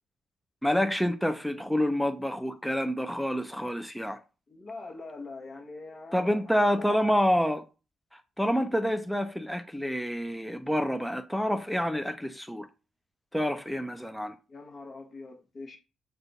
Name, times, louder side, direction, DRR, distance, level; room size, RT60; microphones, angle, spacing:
voice 1, 0.6-4.2 6.1-7.6 8.4-12.7 13.3-14.4, equal, ahead, 0.4 m, -28 dB
voice 2, 4.5-6.5 6.8-7.0 14.5-15.8, left 3 dB, 40° left, 0.9 m, -43 dB
4.9 x 2.3 x 4.0 m
cardioid pair, 90°, 0 cm